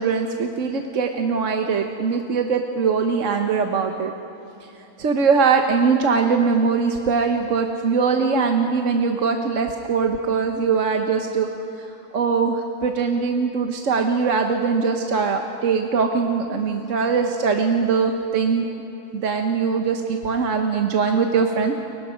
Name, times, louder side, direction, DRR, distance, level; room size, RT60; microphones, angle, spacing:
voice 1, 0.0-4.1 5.0-11.5 11.8-18.7 19.1-21.7, right 5 dB, 65° right, 4 dB, 1.4 m, -21 dB
29.5 x 23.5 x 5.2 m, 3.0 s
omnidirectional pair, 1.4 m